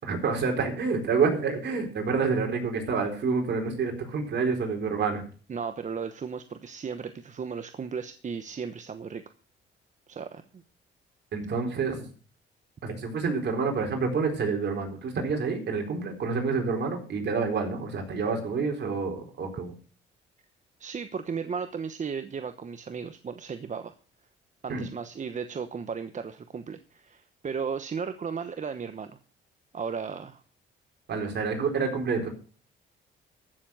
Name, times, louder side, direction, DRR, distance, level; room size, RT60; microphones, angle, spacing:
voice 1, 0.0-5.3 11.3-12.1 12.8-19.7 24.7-24.8 31.1-32.3, right 5 dB, 60° right, 2 dB, 4.2 m, -28 dB
voice 2, 5.5-9.2 10.1-10.6 20.8-23.9 24.6-29.1 29.7-30.4, right 6 dB, 40° right, 9 dB, 1.0 m, -35 dB
15.0 x 7.0 x 6.3 m, 0.39 s
cardioid pair, 90°, 20 cm